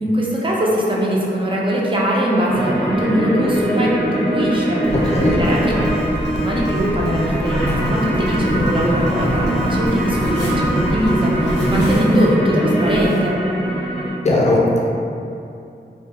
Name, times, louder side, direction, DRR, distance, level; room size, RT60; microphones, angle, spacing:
voice 1, 0.0-4.8 5.4-5.7 6.4-13.4, equal, 30° right, -5 dB, 0.4 m, -21 dB
sound 1, 2.5-14.1, equal, ahead, 0.8 m, -21 dB
sound 2, 4.8-12.0, equal, 85° left, 0.7 m, -28 dB
sound 3, 7.6-9.3 9.6-13.2, equal, 85° right, 0.8 m, -31 dB
voice 2, 14.2-14.8, left 2 dB, 40° left, -4 dB, 0.5 m, -17 dB
2.3 x 2.2 x 2.8 m, 2.6 s
wide cardioid pair, 80°, 18 cm